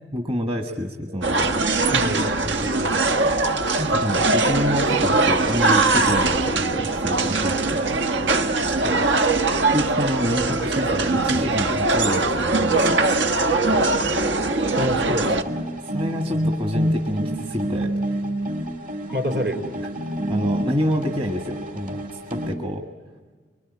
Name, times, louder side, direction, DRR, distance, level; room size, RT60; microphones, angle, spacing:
voice 1, 0.1-1.5 3.8-7.9 9.7-13.0 15.9-17.9 20.3-22.0 22.3-22.8, equal, 30° right, 3 dB, 1.5 m, -27 dB
voice 2, 1.1-1.5 1.9-3.6 8.8-9.1 14.7-15.3 19.1-19.7, equal, 70° right, 5 dB, 4.1 m, -29 dB
sound 1, 1.2-15.4, right 3 dB, 85° right, 1.3 m, -21 dB
sound 2, 13.7-22.5, equal, 50° right, 2.8 m, -28 dB
24.5 x 24.0 x 9.7 m, 1.4 s
head